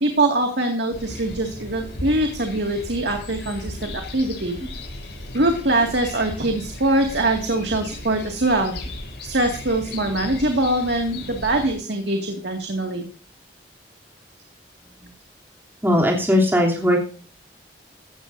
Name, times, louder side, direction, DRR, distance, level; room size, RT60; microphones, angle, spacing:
voice 1, 0.0-4.6 5.3-8.8 9.2-13.1, right 2 dB, 70° right, 3 dB, 2.2 m, -23 dB
sound 1, 0.9-11.8, left 1 dB, 70° left, 6.1 m, -36 dB
voice 2, 15.8-17.0, left 1 dB, 10° right, -2 dB, 3.1 m, -19 dB
16.5 x 13.5 x 2.7 m, 0.39 s
head